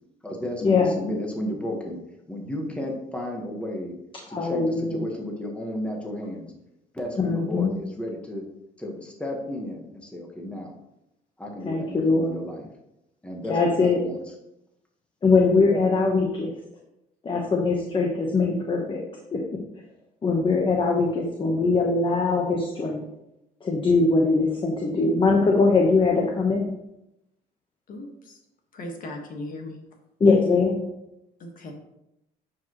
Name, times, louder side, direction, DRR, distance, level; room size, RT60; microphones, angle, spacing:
voice 1, 0.2-2.0 2.3-3.9 4.3-6.5 6.9-8.4 8.8-10.7 11.4-12.7 13.2-14.2, left 1 dB, 5° left, 0 dB, 1.4 m, -33 dB
voice 2, 4.3-5.0 7.2-7.7 11.6-12.4 13.5-14.0 15.2-16.5 17.2-19.0 19.3-19.4 20.2-23.0 23.6-26.6 30.2-30.8, left 3 dB, 30° left, 0 dB, 1.1 m, -21 dB
voice 3, 27.9-28.4 28.7-29.8 31.4-31.7, left 1 dB, 55° left, 2 dB, 1.6 m, -37 dB
10.0 x 5.0 x 3.1 m, 0.85 s
cardioid pair, 110°, 17 cm